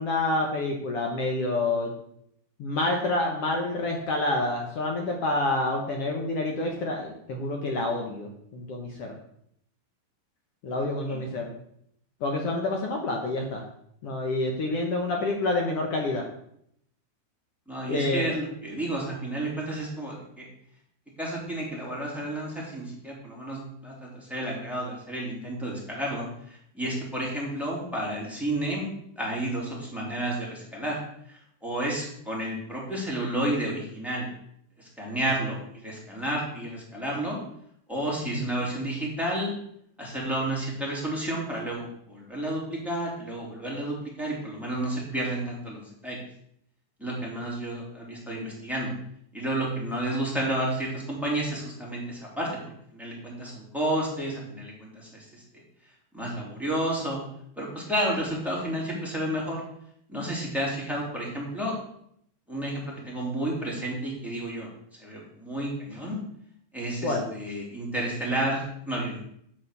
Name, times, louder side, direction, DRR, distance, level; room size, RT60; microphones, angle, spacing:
voice 1, 0.0-1.9 2.6-9.1 10.6-11.5 12.2-13.6 14.0-16.3 17.9-18.3 38.2-38.6 67.0-67.3, left 2 dB, 85° left, 2 dB, 1.3 m, -28 dB
voice 2, 17.7-20.4 21.2-28.9 29.2-31.0 31.3-34.3 34.8-37.4 37.9-39.5 40.0-46.2 47.0-48.9 49.3-52.5 52.9-55.4 56.1-57.2 57.6-59.6 60.1-61.7 62.5-64.7 65.0-66.2 66.7-69.2, right 1 dB, ahead, -4 dB, 2.9 m, -31 dB
9.7 x 6.2 x 6.8 m, 0.71 s
omnidirectional pair, 4.5 m